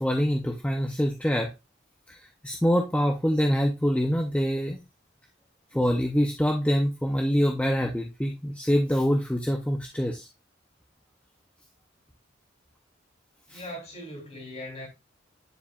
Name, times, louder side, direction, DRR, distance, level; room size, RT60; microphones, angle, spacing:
voice 1, 0.0-1.5 2.1-4.8 5.7-10.3 13.5-13.6, equal, 5° left, 0.6 m, -25 dB
voice 2, 13.5-14.9, left 1 dB, 35° left, 3.3 m, -39 dB
9.9 x 4.7 x 2.3 m
head